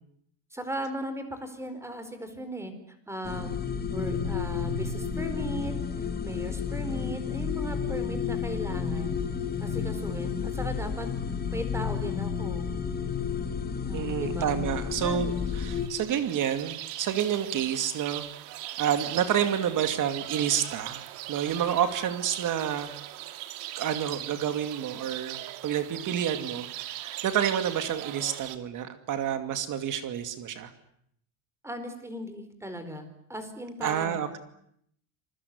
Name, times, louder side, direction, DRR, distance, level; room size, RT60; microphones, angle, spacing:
voice 1, 0.5-3.6 3.9-9.2 9.6-11.1 11.5-12.7 13.8-14.6 15.0-15.2 31.6-33.0 33.3-34.2, right 1 dB, 5° right, 9 dB, 4.5 m, -37 dB
sound 1, 3.3-15.9, left 6 dB, 20° left, 2.2 m, -31 dB
voice 2, 13.9-18.5 18.8-21.0 21.3-22.9 23.8-30.7 33.8-34.4, right 9 dB, 40° right, 9 dB, 2.5 m, -29 dB
sound 2, 15.3-28.6, right 15 dB, 75° right, 2.7 m, -39 dB
26.5 x 21.5 x 9.6 m, 0.72 s
cardioid pair, 145°, 46 cm